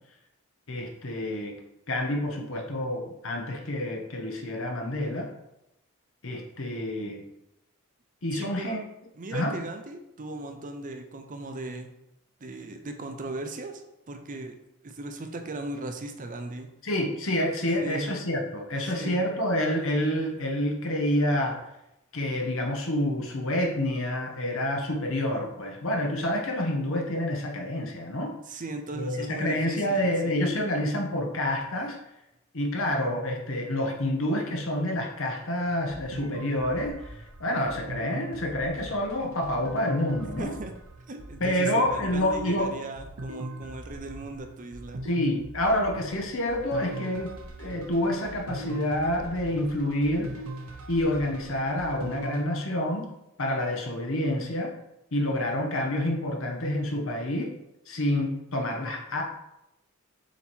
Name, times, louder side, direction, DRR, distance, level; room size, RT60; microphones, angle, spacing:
voice 1, 0.7-1.6 1.9-5.3 6.2-7.2 8.2-8.8 9.3-9.6 16.8-21.6 22.1-28.3 28.9-32.0 32.5-40.6 41.4-42.7 45.0-50.3 50.9-53.0 53.4-54.7 55.1-57.5 57.9-59.2, left 1 dB, 65° left, 1 dB, 1.1 m, -28 dB
voice 2, 8.3-8.8 9.2-11.9 12.4-13.8 14.1-14.6 14.8-16.7 17.8-18.1 18.8-19.2 28.5-30.4 40.4-40.7 41.1-45.0, right 2 dB, 40° right, 5 dB, 0.6 m, -37 dB
sound 1, 35.6-52.4, right 1 dB, 80° right, 0.9 m, -41 dB
7.0 x 3.1 x 4.4 m, 0.87 s
head